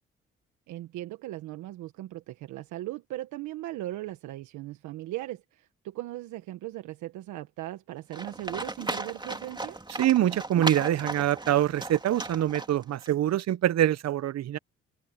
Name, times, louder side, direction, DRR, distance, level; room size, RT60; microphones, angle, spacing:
voice 1, 0.7-9.8, right 15 dB, 80° right, 1.5 m, -38 dB
Livestock farm animals working animals, 8.1-13.1, right 2 dB, 15° right, 2.7 m, -36 dB
voice 2, 10.0-14.6, right 12 dB, 65° right, 0.9 m, -25 dB
supercardioid pair, 55°, 29 cm